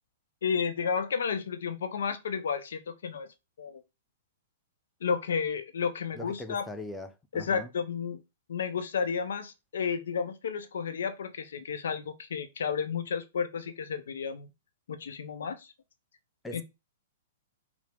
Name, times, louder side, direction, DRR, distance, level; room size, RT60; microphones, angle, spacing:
voice 1, 0.4-3.3 3.6-3.8 5.0-6.6 7.3-8.2 8.5-14.5 14.9-15.7 16.5-16.6, left 6 dB, 65° left, 0.5 m, -32 dB
voice 2, 6.1-7.7 16.4-16.6, left 2 dB, 5° left, 0.5 m, -40 dB
4.6 x 2.0 x 3.4 m
figure-of-eight pair, 110°, 0 cm